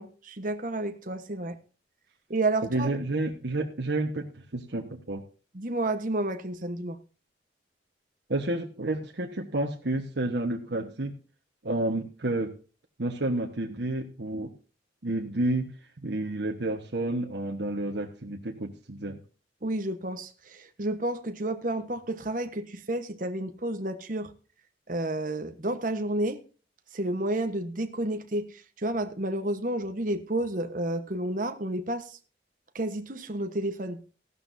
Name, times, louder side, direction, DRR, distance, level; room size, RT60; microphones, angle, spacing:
voice 1, 0.0-1.6 2.3-2.9 5.5-7.0 19.6-24.3 24.9-26.4 26.9-32.2 32.7-34.0, right 1 dB, 45° right, 7 dB, 1.2 m, -31 dB
voice 2, 2.7-4.2 4.5-5.2 8.3-11.1 11.6-12.5 13.0-14.5 15.0-15.7 16.0-19.2, right 2 dB, 75° right, 1 dB, 1.4 m, -30 dB
15.5 x 12.0 x 2.7 m, 0.38 s
head